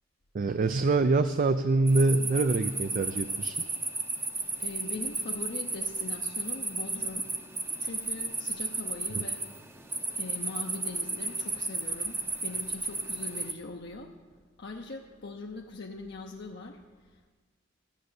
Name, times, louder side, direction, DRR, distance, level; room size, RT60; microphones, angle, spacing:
voice 1, 0.3-3.6, right 3 dB, 45° right, 11 dB, 0.4 m, -25 dB
sound 1, 1.9-13.5, right 3 dB, 10° right, 0.7 m, -34 dB
voice 2, 4.6-7.3 7.8-9.4 10.1-14.1 14.6-17.3, left 3 dB, 60° left, 0 dB, 0.7 m, -42 dB
13.5 x 6.5 x 7.9 m, 1.4 s
head